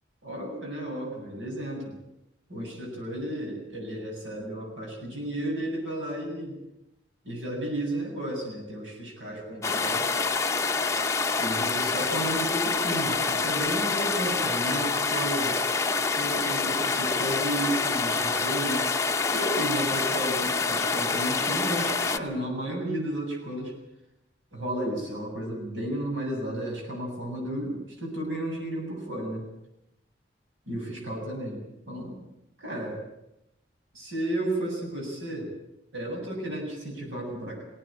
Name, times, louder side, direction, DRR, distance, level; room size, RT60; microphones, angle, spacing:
voice 1, 0.2-2.0 2.5-6.6 7.2-10.2 11.4-15.6 16.2-18.9 19.3-23.7 24.5-29.4 30.7-31.6 31.9-32.2 32.6-33.0 33.9-35.5 35.9-37.6, right 1 dB, 85° right, 0 dB, 7.7 m, -33 dB
sound 1, 9.6-22.2, left 4 dB, 15° left, 0.8 m, -27 dB
21.5 x 17.5 x 8.8 m, 0.87 s
head